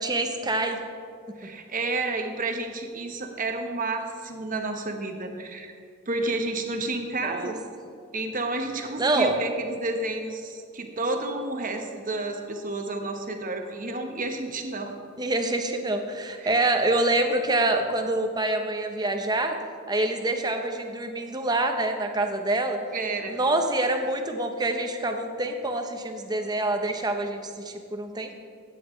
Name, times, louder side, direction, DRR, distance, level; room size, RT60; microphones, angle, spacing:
voice 1, 0.0-0.8 7.2-7.5 9.0-9.4 15.2-19.6 19.9-22.8 23.3-28.3, right 2 dB, 20° right, 5 dB, 0.8 m, -26 dB
voice 2, 1.4-5.7 6.1-7.6 8.1-14.9 16.4-16.6 22.9-23.4, right 2 dB, 40° right, 4 dB, 1.0 m, -31 dB
14.5 x 9.3 x 3.2 m, 2.3 s
head